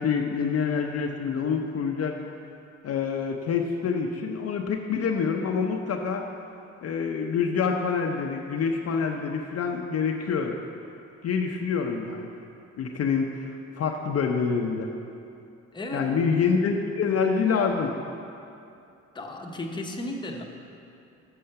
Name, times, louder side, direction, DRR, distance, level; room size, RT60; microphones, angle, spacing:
voice 1, 0.0-2.1 2.8-6.2 6.8-10.6 11.2-12.3 12.8-14.9 15.9-17.9, left 6 dB, 55° left, 2 dB, 0.6 m, -26 dB
voice 2, 15.7-16.1 19.1-20.4, left 1 dB, 15° left, 1 dB, 0.8 m, -34 dB
6.6 x 6.2 x 5.7 m, 2.6 s
cardioid pair, 90°, 30 cm